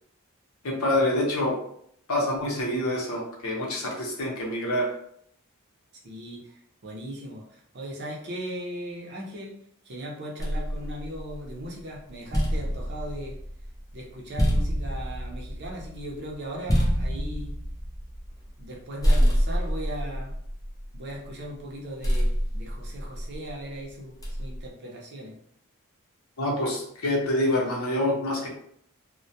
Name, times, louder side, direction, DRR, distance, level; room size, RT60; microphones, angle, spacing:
voice 1, 0.6-1.6 2.1-4.9 26.4-28.5, left 1 dB, 70° left, -2 dB, 0.7 m, -26 dB
voice 2, 6.0-9.5 9.9-13.4 13.9-17.6 18.6-20.3 20.9-25.4, equal, 50° right, -1 dB, 0.6 m, -38 dB
sound 1, 10.4-11.7 12.1-18.8 19.0-21.3 22.0-23.5 24.2-24.7, equal, 15° left, 0.4 m, -27 dB
2.2 x 2.1 x 2.7 m, 0.67 s
head